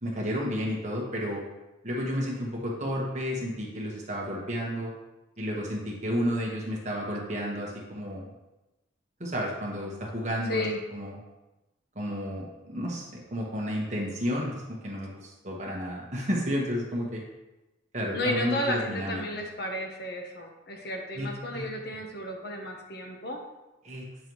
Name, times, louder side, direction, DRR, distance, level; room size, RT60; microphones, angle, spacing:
voice 1, 0.0-1.4 1.8-4.9 5.4-8.3 9.2-10.6 10.9-11.2 11.9-17.2 17.9-19.2 21.1-21.7 23.8-24.1, equal, 35° right, -3 dB, 1.5 m, -31 dB
voice 2, 10.5-10.8 18.1-23.4, left 1 dB, 55° left, 2 dB, 1.0 m, -33 dB
8.6 x 5.4 x 3.2 m, 1.0 s
head